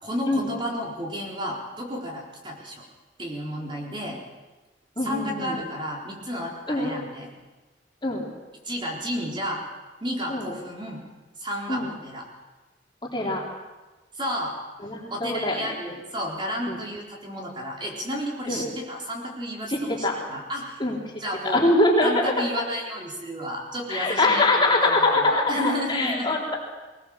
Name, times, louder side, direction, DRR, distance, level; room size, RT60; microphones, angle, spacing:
voice 1, 0.0-2.8 3.2-4.2 5.0-7.3 8.6-9.6 10.0-11.0 11.4-12.2 14.1-14.5 15.1-20.8 21.2-21.7 22.0-26.4, equal, 25° right, -2 dB, 4.2 m, -32 dB
voice 2, 5.0-5.6 6.7-6.9 8.0-8.3 10.3-10.5 11.7-11.9 13.1-13.4 14.8-16.0 16.7-16.8 18.5-18.7 19.7-20.2 20.8-21.0 21.4-22.5 23.9-26.6, left 2 dB, 25° left, -2 dB, 3.6 m, -23 dB
21.0 x 19.5 x 7.4 m, 1.2 s
head